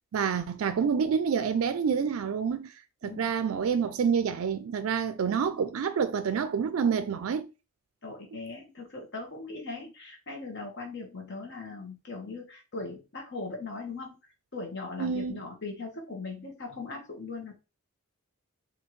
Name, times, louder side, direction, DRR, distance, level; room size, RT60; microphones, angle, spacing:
voice 1, 0.1-2.7 3.0-7.5 15.0-15.4, right 6 dB, 70° right, 0.4 m, -28 dB
voice 2, 8.0-14.2 14.5-17.6, left 3 dB, 55° left, 1.2 m, -39 dB
4.2 x 2.7 x 3.1 m
head